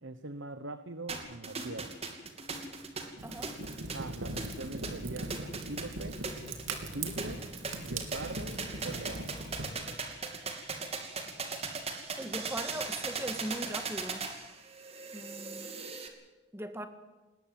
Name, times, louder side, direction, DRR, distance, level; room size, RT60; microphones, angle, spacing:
voice 1, 0.0-2.0 3.9-6.2 6.9-7.4 7.8-9.3, right 2 dB, 70° right, 11 dB, 1.1 m, -42 dB
sound 1, 1.1-16.1, right 4 dB, 30° right, 2.7 m, -39 dB
voice 2, 3.2-3.5 12.2-14.3 15.1-15.8 16.5-16.9, right 1 dB, 10° right, 8 dB, 1.7 m, -39 dB
Fire, 3.2-9.7, right 2 dB, 85° right, 3.2 m, -40 dB
21.0 x 19.0 x 7.7 m, 1.2 s
head